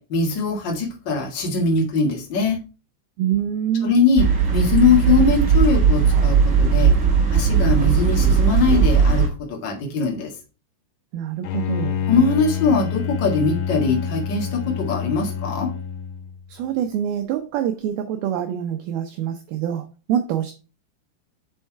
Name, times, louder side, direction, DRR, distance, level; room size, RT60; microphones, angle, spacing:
voice 1, 0.1-2.6 3.8-4.2 4.5-6.9 7.3-10.3 12.1-15.7, left 4 dB, 50° left, 1.3 m, -21 dB
voice 2, 3.2-4.1 11.1-12.0 16.5-20.5, right 10 dB, 80° right, 2.3 m, -25 dB
sound 1, 4.2-9.3, right 6 dB, 30° right, 1.8 m, -17 dB
Bowed string instrument, 11.4-16.4, left 7 dB, 85° left, 1.8 m, -27 dB
6.3 x 5.5 x 4.6 m
omnidirectional pair, 5.0 m